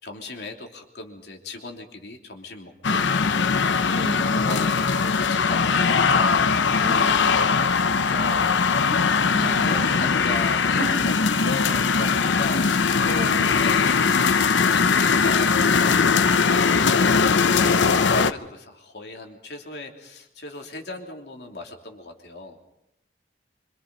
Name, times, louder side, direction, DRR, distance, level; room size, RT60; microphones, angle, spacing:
voice 1, 0.0-3.0 4.3-13.1 13.6-15.8 17.4-22.6, left 2 dB, 65° left, 2 dB, 3.2 m, -37 dB
sound 1, 2.8-18.3, left 5 dB, 90° left, 0.8 m, -20 dB
voice 2, 3.9-4.3 6.8-7.2 8.9-9.9 10.8-11.1 12.7-13.6, equal, 30° right, 1 dB, 4.8 m, -34 dB
26.0 x 25.5 x 5.4 m, 0.84 s
head